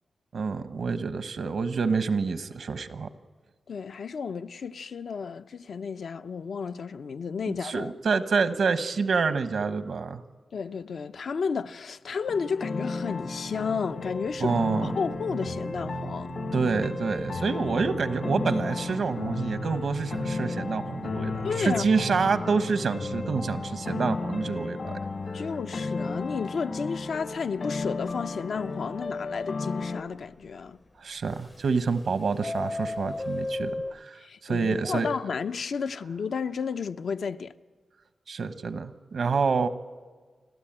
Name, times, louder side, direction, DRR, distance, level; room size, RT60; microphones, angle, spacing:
voice 1, 0.3-3.1 7.6-10.2 14.4-14.9 16.5-24.9 31.0-35.1 38.3-39.7, right 5 dB, 80° right, 1.1 m, -27 dB
voice 2, 3.7-7.9 10.5-14.5 14.8-16.3 21.4-22.0 25.3-30.8 34.1-37.5, left 5 dB, 80° left, 0.6 m, -32 dB
sound 1, 12.3-30.0, left 4 dB, 65° left, 1.4 m, -34 dB
sound 2, 12.9-25.3, right 5 dB, 60° right, 0.6 m, -41 dB
Subway metro underground, 27.0-27.3 27.7-27.8 28.1-28.2 28.7-28.8 31.3-32.0 32.3-34.0, left 2 dB, 30° left, 0.5 m, -33 dB
29.5 x 13.0 x 8.9 m
wide cardioid pair, 110°, 0 cm